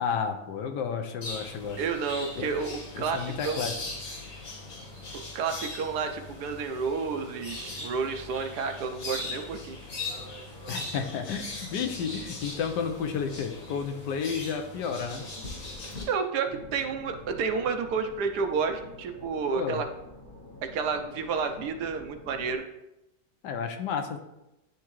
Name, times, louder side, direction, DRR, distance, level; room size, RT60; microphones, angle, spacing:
voice 1, 0.0-1.8 2.4-2.5 2.9-3.7 10.7-15.3 19.6-19.8 23.4-24.2, left 6 dB, 80° left, 6 dB, 1.4 m, -31 dB
sound 1, 1.2-16.0, left 2 dB, 55° left, 1.9 m, -40 dB
voice 2, 1.8-3.6 5.1-9.8 16.1-19.9 20.6-22.7, right 5 dB, 75° right, 6 dB, 1.2 m, -30 dB
sound 2, 16.4-22.6, left 2 dB, 40° left, 0.8 m, -48 dB
10.5 x 3.6 x 3.1 m, 0.89 s
omnidirectional pair, 1.9 m